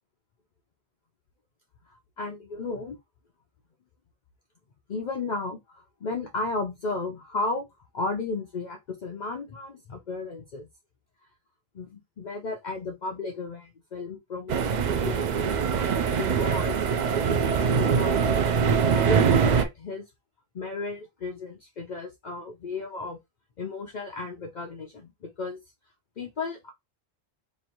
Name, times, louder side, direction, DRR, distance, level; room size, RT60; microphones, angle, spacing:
voice 1, 1.9-3.0 4.9-7.6 7.9-10.7 11.7-15.3 16.2-16.8 17.2-18.5 18.9-20.0 20.5-23.2 23.6-25.6 26.2-26.7, left 3 dB, 50° left, 0.7 m, -34 dB
sound 1, 14.5-19.6, right 6 dB, 55° right, 0.5 m, -23 dB
3.1 x 2.6 x 4.3 m
omnidirectional pair, 1.1 m